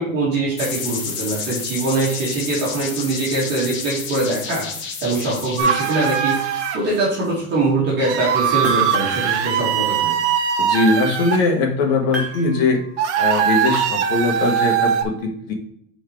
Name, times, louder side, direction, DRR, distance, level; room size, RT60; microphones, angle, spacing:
voice 1, 0.0-4.7 5.0-6.4 6.7-10.1, right 2 dB, 25° right, -7 dB, 2.2 m, -22 dB
sound 1, 0.6-7.3, left 5 dB, 30° left, 0.9 m, -31 dB
sound 2, 5.6-6.8 8.0-11.4 13.0-15.0, right 8 dB, 55° right, 1.0 m, -20 dB
sound 3, 8.4-9.4 12.1-13.2, right 1 dB, ahead, 0.8 m, -33 dB
voice 2, 10.6-12.8 13.2-15.5, left 3 dB, 50° left, 2 dB, 1.5 m, -20 dB
5.4 x 4.7 x 4.6 m, 0.70 s
supercardioid pair, 160°, 41 cm